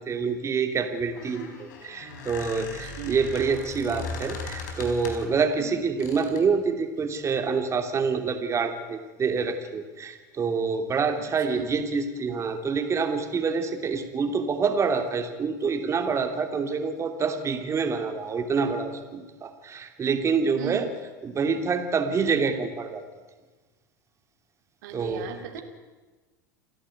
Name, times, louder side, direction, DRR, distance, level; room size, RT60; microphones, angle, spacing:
voice 1, 0.0-20.9 21.2-23.0 24.9-25.3, right 5 dB, 30° right, 6 dB, 3.0 m, -27 dB
Squeak, 1.0-5.4 6.0-6.5, left 4 dB, 75° left, 4.9 m, -38 dB
voice 2, 2.6-3.2 5.5-5.8 11.5-11.7 20.5-20.9 24.8-25.6, right 9 dB, 70° right, 5 dB, 3.0 m, -37 dB
29.0 x 11.5 x 9.4 m, 1.3 s
hypercardioid pair, 95°, 10 cm